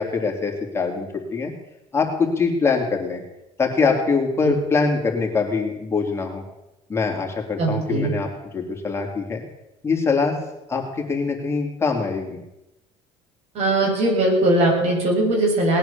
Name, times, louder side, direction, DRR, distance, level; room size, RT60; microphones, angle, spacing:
voice 1, 0.0-1.5 1.9-3.2 3.6-6.4 6.9-9.4 9.8-10.3 10.7-12.4, left 4 dB, 20° left, 0 dB, 3.4 m, -23 dB
voice 2, 7.6-8.1 13.5-15.8, right 2 dB, 60° right, 0 dB, 7.4 m, -20 dB
19.5 x 9.2 x 7.2 m, 0.93 s
cardioid pair, 110°, 13 cm